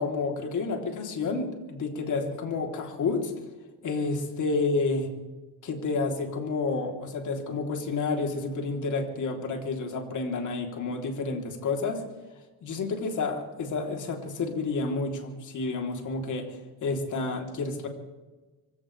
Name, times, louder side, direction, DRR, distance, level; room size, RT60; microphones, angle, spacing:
voice 1, 0.0-3.3 3.8-5.1 5.6-12.0 12.6-17.9, left 3 dB, 50° left, 2 dB, 3.5 m, -30 dB
25.5 x 16.5 x 3.4 m, 1.2 s
cardioid pair, 95°, 37 cm